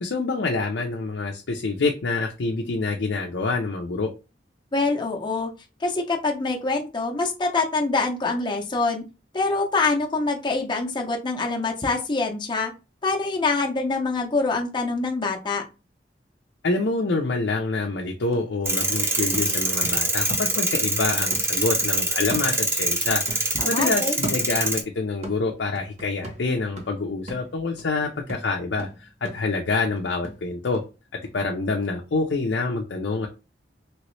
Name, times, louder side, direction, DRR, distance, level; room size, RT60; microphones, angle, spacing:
voice 1, 0.0-4.1 16.6-30.8 31.3-33.3, left 3 dB, 85° left, 1 dB, 0.6 m, -26 dB
voice 2, 4.7-5.5 5.8-9.0 9.3-12.7 13.0-15.6 23.5-24.2, left 3 dB, 25° left, 1 dB, 0.6 m, -25 dB
sound 1, 17.8-21.0 21.3-23.0 23.3-24.9 25.2-30.9 31.2-31.3, right 1 dB, 40° right, 0.9 m, -39 dB
sound 2, 18.7-24.8, right 2 dB, 15° right, 0.6 m, -24 dB
3.1 x 3.0 x 3.1 m, 0.29 s
head